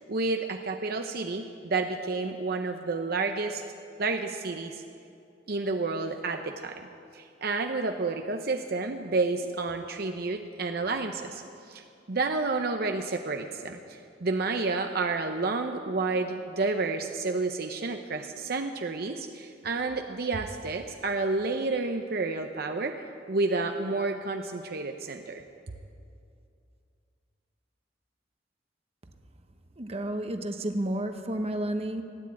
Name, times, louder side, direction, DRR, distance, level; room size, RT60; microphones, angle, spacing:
voice 1, 0.1-3.6 4.0-4.8 5.5-6.8 7.1-11.4 11.7-22.9 23.3-25.4, right 3 dB, 55° right, 5 dB, 0.7 m, -30 dB
voice 2, 29.8-32.0, right 1 dB, 35° right, 6 dB, 1.0 m, -31 dB
16.5 x 10.0 x 8.5 m, 2.5 s
head